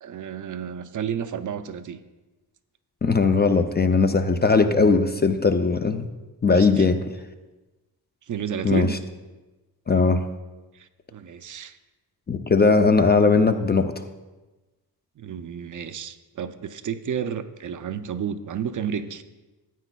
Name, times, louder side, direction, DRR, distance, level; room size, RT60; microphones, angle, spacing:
voice 1, 0.0-2.0 6.6-6.9 8.3-9.0 10.7-11.8 15.2-19.2, right 8 dB, 55° right, 11 dB, 0.4 m, -31 dB
voice 2, 3.0-6.1 6.4-7.0 8.6-9.0 9.9-10.2 12.3-14.0, left 4 dB, 25° left, 7 dB, 0.3 m, -19 dB
13.5 x 9.0 x 2.2 m, 1.2 s
wide cardioid pair, 170°, 39 cm